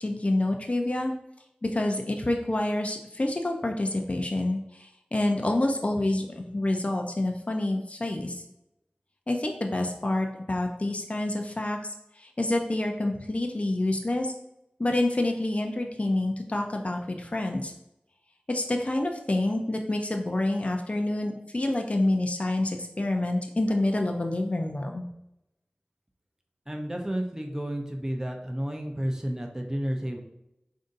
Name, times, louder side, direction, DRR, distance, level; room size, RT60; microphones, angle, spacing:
voice 1, 0.0-1.1 1.6-8.4 9.3-11.8 12.2-14.3 14.8-17.7 18.5-25.0, left 1 dB, 40° left, 3 dB, 0.5 m, -27 dB
voice 2, 26.7-30.2, equal, 20° right, 2 dB, 0.6 m, -31 dB
5.0 x 2.6 x 2.6 m, 0.85 s
wide cardioid pair, 45°, 3 cm